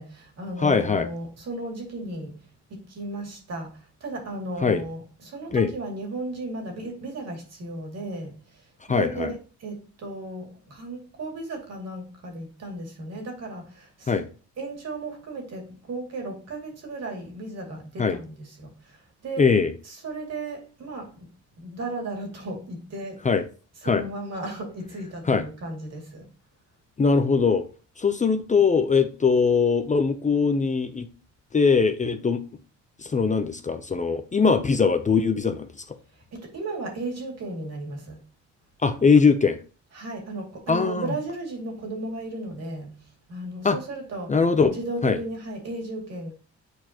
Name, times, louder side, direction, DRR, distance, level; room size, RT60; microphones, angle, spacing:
voice 1, 0.0-14.2 14.6-19.5 19.8-21.3 21.6-23.3 23.8-26.3 36.1-38.2 39.9-44.4 44.7-46.3, right 2 dB, 55° right, 2.5 m, -35 dB
voice 2, 0.6-1.1 4.6-4.8 5.5-5.7 8.9-9.3 14.1-14.2 18.0-18.2 19.4-19.7 23.2-23.4 23.8-24.0 25.3-25.4 27.0-27.6 28.0-31.1 31.5-32.4 33.0-35.7 38.8-39.6 40.7-41.1 43.6-43.8 44.3-44.8 45.0-45.2, left 5 dB, 25° left, 0.6 m, -21 dB
8.1 x 4.4 x 2.9 m
cardioid pair, 90°, 30 cm